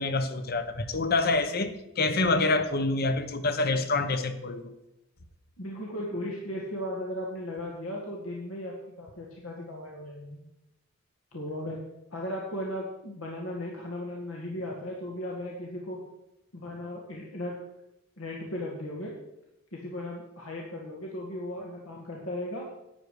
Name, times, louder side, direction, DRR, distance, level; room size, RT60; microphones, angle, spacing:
voice 1, 0.0-4.7, left 3 dB, 45° left, 0.9 m, -27 dB
voice 2, 5.6-10.4 11.3-11.8 12.1-16.0 16.5-17.6 18.2-19.1 19.7-22.7, left 1 dB, 75° left, 2.0 m, -36 dB
12.0 x 9.5 x 4.9 m
head